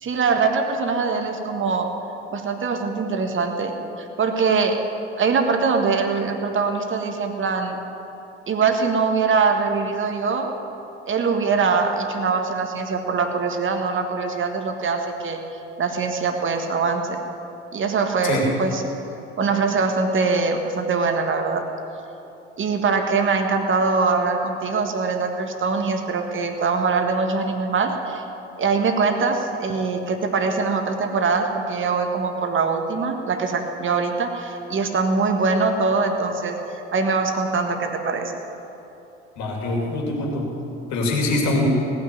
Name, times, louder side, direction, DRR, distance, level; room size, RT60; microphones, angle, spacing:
voice 1, 0.0-2.0 2.3-4.8 5.2-7.8 8.5-10.5 11.1-15.4 15.8-17.2 17.7-18.8 19.4-21.7 22.6-28.2 28.6-38.3, right 4 dB, 40° right, 4 dB, 1.8 m, -23 dB
voice 2, 39.4-40.5 40.9-41.7, left 2 dB, 60° left, -1 dB, 3.1 m, -23 dB
18.0 x 6.3 x 9.3 m, 3.0 s
figure-of-eight pair, 60°, 32 cm